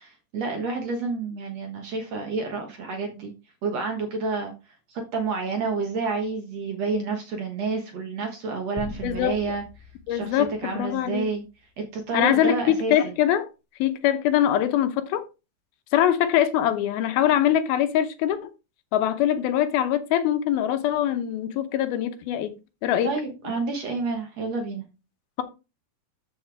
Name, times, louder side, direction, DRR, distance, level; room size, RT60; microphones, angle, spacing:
voice 1, 0.0-3.3 3.6-4.5 4.9-9.6 10.1-11.4 11.8-13.1 23.0-24.8, right 4 dB, 55° right, 2.2 m, -29 dB
sound 1, 8.8-11.3, left 2 dB, 10° left, 0.9 m, -42 dB
voice 2, 9.0-9.3 10.1-11.3 12.1-13.5 13.8-15.2 15.9-18.5 18.9-22.5 22.8-23.1, left 11 dB, 80° left, 2.7 m, -23 dB
12.5 x 5.8 x 3.4 m
omnidirectional pair, 4.3 m